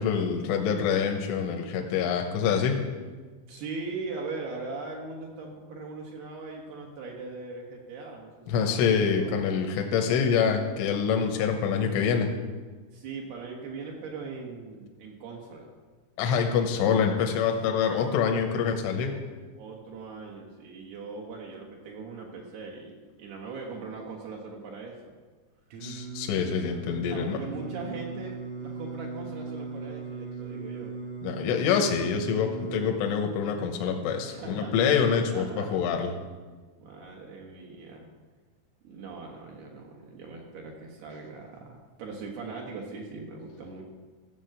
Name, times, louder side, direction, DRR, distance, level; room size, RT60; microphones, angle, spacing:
voice 1, 0.0-2.8 8.5-12.3 16.2-19.1 25.8-27.4 31.2-36.1, left 6 dB, 80° left, 3 dB, 3.4 m, -26 dB
voice 2, 3.5-8.3 8.6-8.8 9.2-9.6 9.9-10.1 12.9-15.7 16.2-16.4 19.0-19.2 19.5-25.1 27.1-31.0 34.3-34.9 35.3-35.8 36.8-38.1 38.8-43.8, right 4 dB, 65° right, -1 dB, 2.9 m, -40 dB
Singing, 25.7-32.9, right 4 dB, 90° right, 4.7 m, -38 dB
15.0 x 6.2 x 7.8 m, 1.4 s
omnidirectional pair, 5.7 m